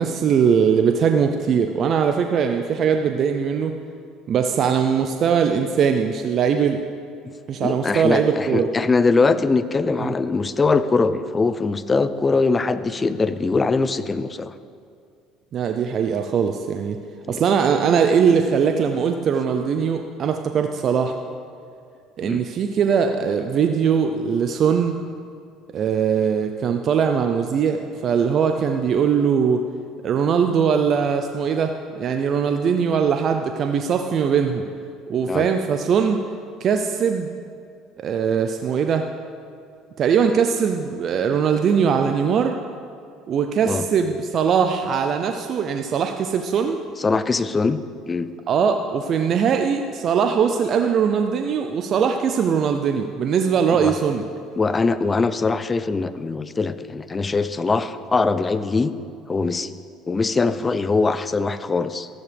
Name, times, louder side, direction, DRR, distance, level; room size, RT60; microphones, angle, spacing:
voice 1, 0.0-3.7 4.3-6.8 7.5-8.7 10.0-10.1 15.5-17.0 17.3-21.1 22.2-25.0 25.7-29.6 30.0-34.6 35.1-36.2 36.6-37.3 38.0-39.0 40.0-42.6 43.3-46.8 48.5-54.2, right 7 dB, 50° right, 5 dB, 0.6 m, -21 dB
voice 2, 7.6-14.5 17.3-17.4 22.2-22.4 35.3-35.5 43.7-43.8 47.0-48.3 53.8-53.9 54.6-58.9 59.3-59.7 60.1-62.1, left 4 dB, 25° left, 13 dB, 0.6 m, -22 dB
13.5 x 11.5 x 3.5 m, 2.3 s
hypercardioid pair, 75°, 0 cm